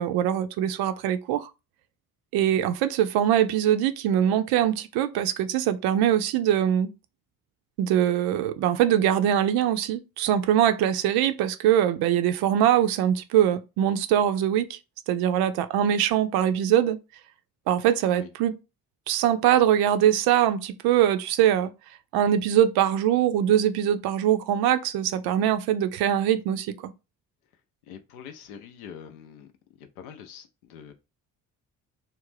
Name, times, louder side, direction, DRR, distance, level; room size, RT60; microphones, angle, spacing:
voice 1, 0.0-1.5 2.3-6.9 7.8-14.8 15.1-17.0 17.7-18.6 19.1-21.7 22.1-26.9, right 10 dB, 60° right, 0.5 m, -22 dB
voice 2, 27.9-29.5 29.8-30.9, left 8 dB, 80° left, 0.6 m, -44 dB
2.4 x 2.1 x 3.2 m
hypercardioid pair, 50°, 43 cm